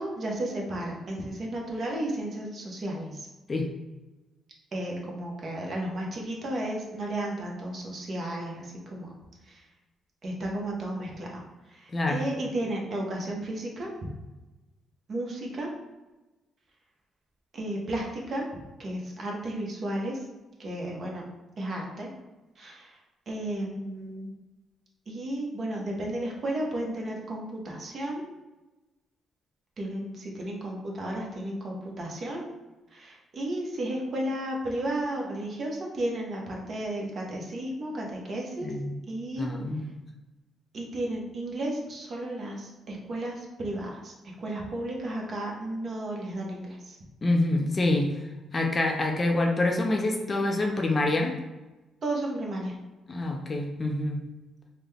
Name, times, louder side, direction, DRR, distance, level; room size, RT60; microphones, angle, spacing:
voice 1, 0.0-3.3 4.7-9.1 9.5-9.6 10.2-11.4 11.7-13.9 15.1-15.7 17.5-18.5 18.8-20.2 20.6-21.2 21.6-22.1 22.6-23.0 23.3-24.3 25.1-28.2 29.8-32.5 32.9-38.7 39.1-39.5 40.7-47.0 52.0-52.8, right 1 dB, 50° right, -1 dB, 0.9 m, -33 dB
voice 2, 38.6-39.0 39.4-39.9 47.2-48.1 48.5-51.4 53.1-54.2, left 2 dB, 30° left, 2 dB, 0.5 m, -26 dB
3.7 x 2.2 x 3.3 m, 1.1 s
cardioid pair, 90°, 0 cm